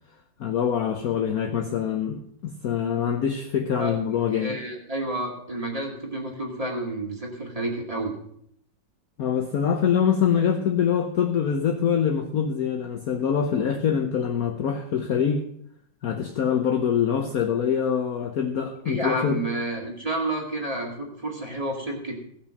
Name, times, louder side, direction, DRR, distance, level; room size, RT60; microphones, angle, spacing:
voice 1, 0.4-4.6 9.2-15.4 16.0-19.4, left 8 dB, 60° left, 3 dB, 1.2 m, -24 dB
voice 2, 4.3-8.1 18.9-22.2, right 1 dB, 20° right, 0 dB, 2.2 m, -30 dB
17.0 x 6.0 x 6.4 m, 0.68 s
omnidirectional pair, 2.0 m